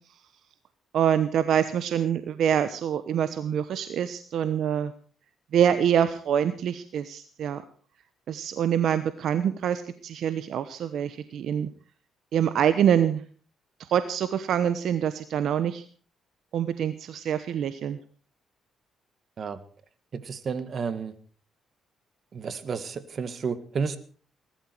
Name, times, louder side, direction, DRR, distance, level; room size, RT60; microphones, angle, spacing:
voice 1, 0.9-4.9 5.5-7.6 8.3-11.7 12.3-13.2 13.9-15.8 16.5-18.0, right 9 dB, 70° right, 12 dB, 1.0 m, -25 dB
voice 2, 20.1-21.1 22.3-24.0, right 5 dB, 50° right, 13 dB, 1.8 m, -31 dB
20.0 x 12.5 x 4.6 m, 0.41 s
cardioid pair, 90°, 0 cm